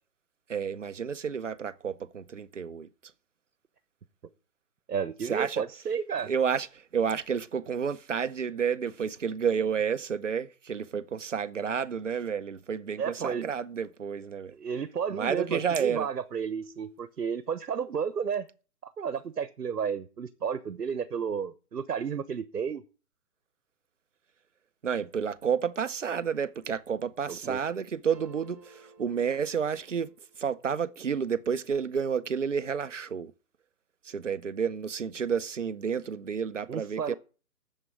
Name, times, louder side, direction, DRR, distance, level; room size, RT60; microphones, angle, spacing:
voice 1, 0.5-2.9 5.2-5.6 6.2-14.5 15.1-16.1 24.8-33.3 34.0-37.1, right 7 dB, 50° right, 0.8 m, -30 dB
voice 2, 4.9-6.3 13.0-13.5 14.5-18.5 18.8-22.8 27.3-27.6 36.7-37.1, right 7 dB, 70° right, 1.2 m, -32 dB
sound 1, 28.1-30.3, right 3 dB, 10° right, 1.2 m, -53 dB
8.1 x 7.5 x 8.8 m
hypercardioid pair, 175°, 48 cm